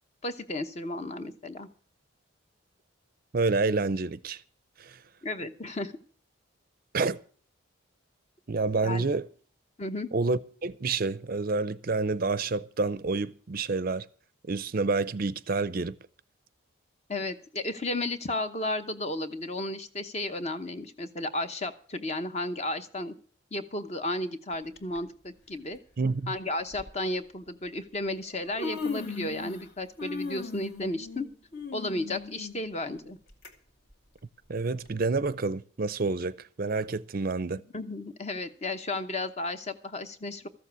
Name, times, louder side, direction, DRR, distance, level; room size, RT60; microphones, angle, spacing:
voice 1, 0.2-1.7 5.2-5.9 8.8-9.0 9.8-10.1 17.1-23.1 23.5-25.8 26.3-31.3 31.7-33.2 37.7-40.5, left 2 dB, 30° left, 0.9 m, -33 dB
voice 2, 3.3-4.4 4.8-5.0 6.9-7.2 8.5-9.3 10.1-14.1 14.5-15.9 26.0-26.3 34.5-37.6, right 3 dB, 45° right, 0.5 m, -28 dB
Human voice, 24.8-25.0 26.0-26.1 26.7-26.9 27.9-28.0 28.3-29.7 30.0-33.5 33.9-34.0 34.9-35.0, left 4 dB, 50° left, 1.9 m, -37 dB
14.0 x 7.4 x 8.2 m
head